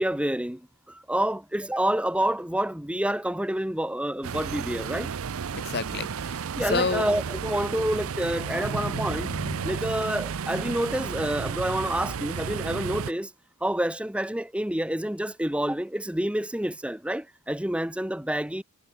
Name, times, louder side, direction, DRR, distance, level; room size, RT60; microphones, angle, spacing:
voice 1, 0.0-5.1 6.5-9.3 9.6-13.3 13.6-18.6, right 1 dB, 5° right, 0.9 m, -28 dB
sound 1, 4.2-13.1, right 6 dB, 75° right, 0.5 m, -32 dB
voice 2, 5.5-7.1 8.7-9.7, left 4 dB, 50° left, 0.7 m, -31 dB
head